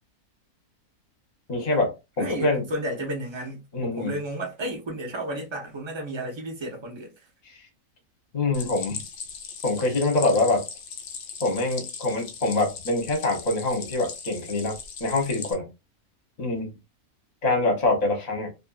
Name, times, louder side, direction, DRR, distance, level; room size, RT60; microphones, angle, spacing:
voice 1, 1.5-2.7 3.7-4.1 7.4-7.6 8.3-9.0 9.6-10.7 11.4-15.7 16.4-16.7 17.4-18.5, left 2 dB, 35° left, 0.8 m, -25 dB
voice 2, 2.2-7.1, right 1 dB, 30° right, 0.5 m, -32 dB
Stream, 8.5-15.5, left 6 dB, 70° left, 0.5 m, -39 dB
2.6 x 2.6 x 2.3 m
omnidirectional pair, 1.5 m